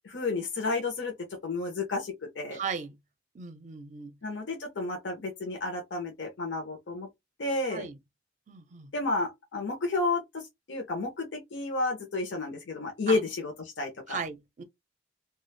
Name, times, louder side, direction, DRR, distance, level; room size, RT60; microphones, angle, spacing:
voice 1, 0.0-1.1 1.4-2.6 4.2-7.1 7.4-7.9 8.9-10.4 10.7-14.2, left 3 dB, 70° left, 0.7 m, -31 dB
voice 2, 2.5-3.0 3.3-4.2 7.7-8.0 8.5-8.9 13.1-13.2 14.1-14.6, right 6 dB, 40° right, 0.5 m, -37 dB
2.4 x 2.2 x 3.2 m
head